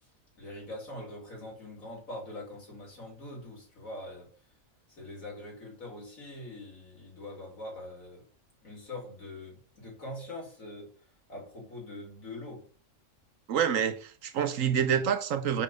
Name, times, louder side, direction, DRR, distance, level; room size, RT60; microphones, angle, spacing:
voice 1, 0.4-4.3 4.9-8.2 8.6-10.9 11.3-12.6, left 1 dB, 85° left, 3.3 m, -43 dB
voice 2, 13.5-15.6, right 8 dB, 75° right, 1.1 m, -27 dB
5.2 x 5.2 x 5.4 m
omnidirectional pair, 1.4 m